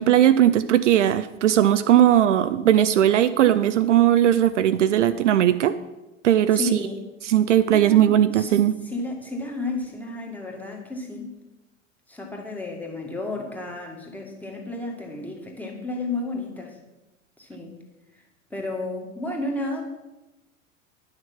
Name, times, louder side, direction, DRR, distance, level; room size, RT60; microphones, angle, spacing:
voice 1, 0.0-5.7 6.2-6.7 7.2-8.7, right 11 dB, 65° right, 12 dB, 0.6 m, -18 dB
voice 2, 6.5-7.1 7.7-11.3 12.1-16.8 17.4-17.8 18.5-19.8, left 2 dB, 5° left, 0 dB, 1.8 m, -32 dB
10.5 x 6.5 x 5.9 m, 1.0 s
figure-of-eight pair, 85°, 40 cm